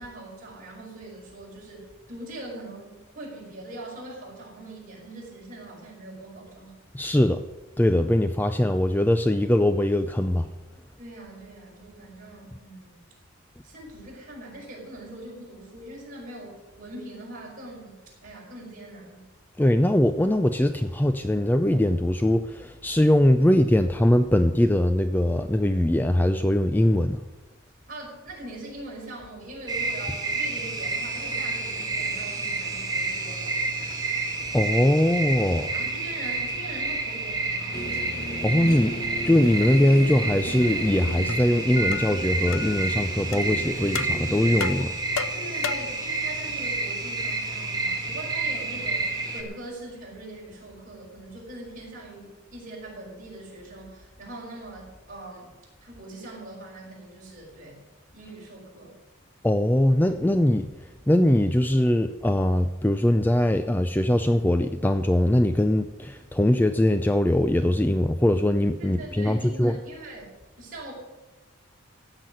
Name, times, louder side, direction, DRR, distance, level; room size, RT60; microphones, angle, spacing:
voice 1, 0.0-6.7 11.0-13.0 13.6-17.9 18.2-19.2 27.9-33.6 35.5-37.8 45.3-55.5 55.8-57.8 58.1-58.9 68.8-70.9, right 1 dB, 40° right, -4 dB, 5.5 m, -42 dB
voice 2, 6.9-7.4 7.8-10.5 19.6-27.2 34.5-35.7 38.4-39.0 39.2-45.0 59.4-69.8, left 1 dB, 10° left, 9 dB, 0.4 m, -21 dB
sound 1, 29.7-49.4, right 3 dB, 20° right, 1.8 m, -30 dB
sound 2, 37.7-44.8, left 1 dB, 45° left, 1.8 m, -36 dB
sound 3, 41.3-41.4 41.9-42.1 42.5-42.7 43.3-43.4 43.9-44.2 44.6-46.0, left 6 dB, 75° left, 0.6 m, -32 dB
15.5 x 6.1 x 9.6 m, 1.2 s
head